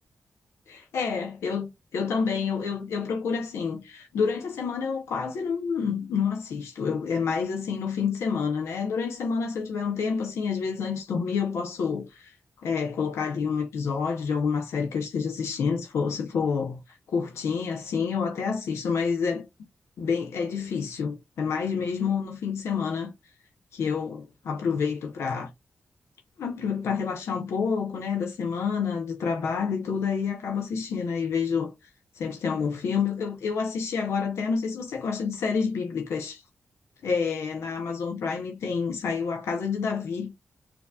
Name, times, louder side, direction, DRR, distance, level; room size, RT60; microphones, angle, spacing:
voice 1, 0.7-12.3 12.6-16.8 17.1-19.5 20.0-23.1 23.7-25.5 26.4-31.7 32.2-36.4 37.0-40.3, left 6 dB, 85° left, 0.7 m, -28 dB
4.1 x 2.8 x 2.2 m
cardioid pair, 50°, 4 cm